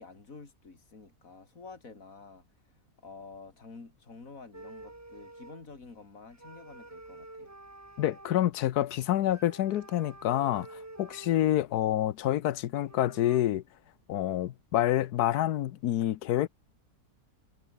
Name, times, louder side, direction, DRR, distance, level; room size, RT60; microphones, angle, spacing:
voice 1, 0.0-7.6, left 4 dB, 60° left, 3.6 m, -50 dB
sound 1, 4.5-5.8 6.3-8.4 9.3-11.7 12.4-12.5 12.7-13.4, right 2 dB, 10° right, 1.1 m, -49 dB
voice 2, 8.0-10.7 11.0-13.6 14.1-16.5, left 13 dB, 85° left, 1.3 m, -27 dB
omnidirectional pair, 1.6 m